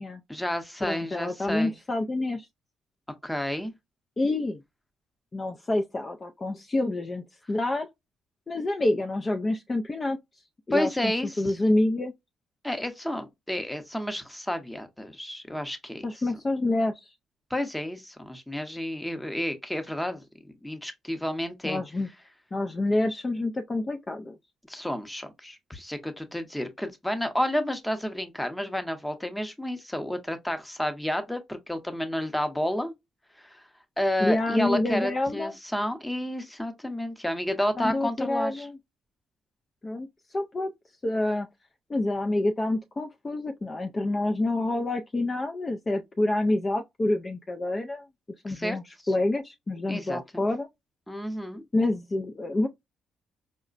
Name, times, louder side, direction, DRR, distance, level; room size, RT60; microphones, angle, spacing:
voice 1, 0.3-1.7 3.2-3.7 10.7-11.6 12.6-16.0 17.5-21.8 24.7-32.9 33.4-33.6 34.0-38.7 48.5-48.8 49.9-50.4 51.1-51.6, left 1 dB, 5° left, 0.7 m, -31 dB
voice 2, 0.8-2.5 4.2-4.6 5.3-7.9 8.5-10.2 10.7-12.1 16.0-17.1 21.6-22.1 22.5-24.4 34.2-35.5 37.8-38.8 39.8-40.7 41.0-41.5 41.9-48.0 48.4-50.7 51.7-52.7, left 2 dB, 30° left, 0.4 m, -27 dB
4.8 x 2.1 x 2.4 m
cardioid pair, 90°, 0 cm